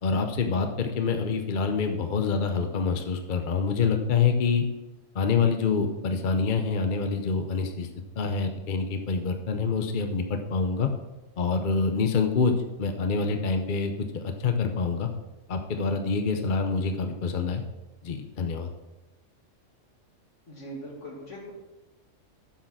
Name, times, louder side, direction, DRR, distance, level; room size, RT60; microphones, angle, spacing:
voice 1, 0.0-4.7 5.1-7.9 8.2-10.9 11.4-15.1 15.5-17.6 18.0-18.7, left 5 dB, 45° left, 5 dB, 0.8 m, -26 dB
voice 2, 20.5-21.5, equal, 70° left, -2 dB, 2.6 m, -40 dB
8.1 x 6.5 x 6.0 m, 1.1 s
omnidirectional pair, 1.3 m